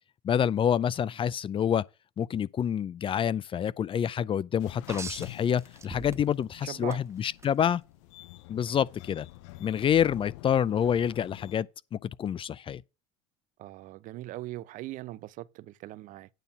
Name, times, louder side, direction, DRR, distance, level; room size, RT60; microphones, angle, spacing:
voice 1, 0.2-1.8 2.2-7.8 8.5-9.3 9.6-12.8, left 9 dB, 35° left, 0.5 m, -27 dB
sound 1, 4.6-11.6, left 18 dB, 80° left, 0.7 m, -48 dB
sound 2, 4.9-6.5 6.9-7.5 9.1-9.2, right 4 dB, 20° right, 1.3 m, -42 dB
voice 2, 6.6-7.0 13.6-16.3, right 16 dB, 60° right, 0.8 m, -40 dB
9.2 x 4.0 x 7.1 m
hypercardioid pair, 80°, 15 cm